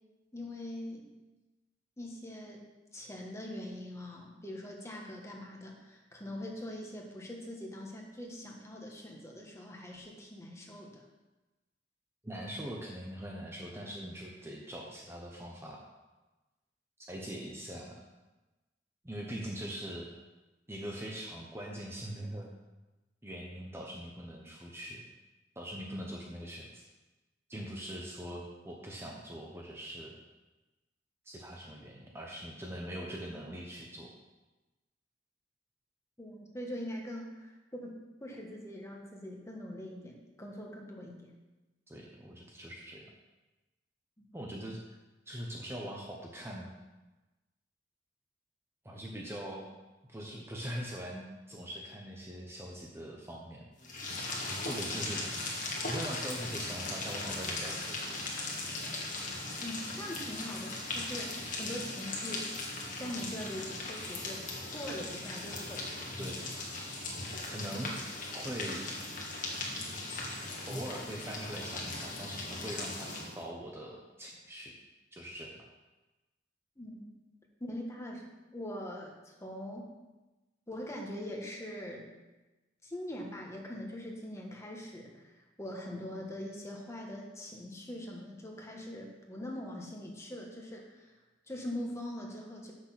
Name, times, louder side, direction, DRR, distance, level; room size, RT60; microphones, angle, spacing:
voice 1, 0.3-1.1 2.0-11.0 36.2-41.3 44.2-44.3 49.0-49.1 59.6-62.5 63.0-64.5 64.7-66.0 76.8-77.1 77.6-78.2 78.5-79.9 80.7-82.1 82.8-85.3 85.6-91.1 91.5-92.7, left 1 dB, 15° left, 0 dB, 1.5 m, -42 dB
voice 2, 12.2-15.9 17.1-18.0 19.0-20.1 20.7-22.5 23.2-25.0 25.6-26.8 27.5-30.1 31.2-34.1 41.9-43.1 44.3-44.8 45.3-46.7 48.8-49.7 50.1-53.6 54.7-55.2 55.9-58.2 66.2-66.4 67.4-67.9 68.3-68.9 70.7-74.7 75.1-75.5, equal, 15° right, -1 dB, 0.9 m, -42 dB
sound 1, 53.8-73.4, left 2 dB, 50° left, 1.8 m, -38 dB
7.8 x 6.4 x 5.8 m, 1.1 s
head